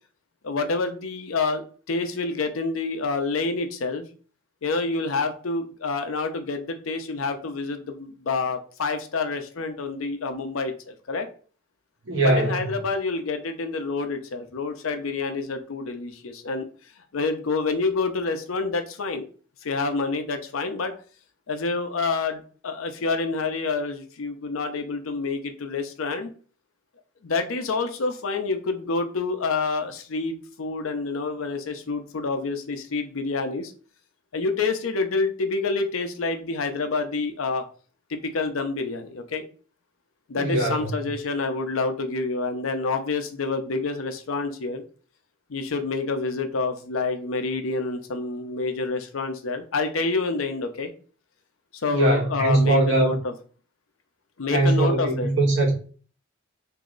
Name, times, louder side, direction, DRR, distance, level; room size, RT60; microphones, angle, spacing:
voice 1, 0.4-4.1 4.6-11.3 12.2-16.7 17.1-19.2 19.6-20.9 21.5-26.3 27.2-33.7 34.3-37.6 38.1-39.4 40.3-44.8 45.5-50.9 51.8-53.3 54.4-55.3, left 3 dB, 85° left, 0.6 m, -28 dB
voice 2, 12.0-12.7 40.3-41.1 51.9-53.2 54.5-55.7, right 2 dB, 65° right, 1.2 m, -21 dB
3.1 x 2.7 x 3.8 m
head